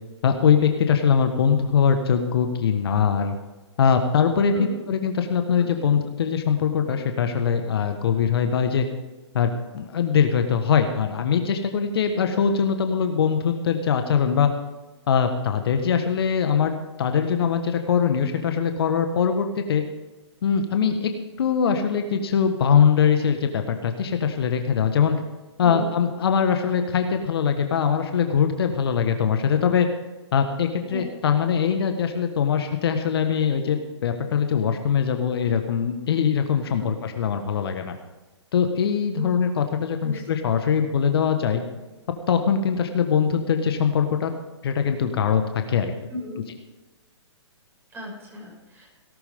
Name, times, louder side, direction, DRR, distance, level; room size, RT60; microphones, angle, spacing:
voice 1, 0.2-3.3 3.8-8.9 9.3-14.5 15.1-19.8 20.4-21.1 21.4-25.2 25.6-29.9 30.3-37.9 38.5-41.6 42.3-44.3 44.6-45.9, left 7 dB, 55° left, 6 dB, 1.5 m, -22 dB
voice 2, 4.5-4.9 5.6-6.0 25.6-25.9 30.9-31.0 36.8-36.9 39.2-39.3 40.0-40.2 46.1-46.4 47.9-48.9, equal, 15° right, -2 dB, 6.0 m, -35 dB
18.0 x 12.5 x 3.7 m, 1.2 s
figure-of-eight pair, 125°, 15 cm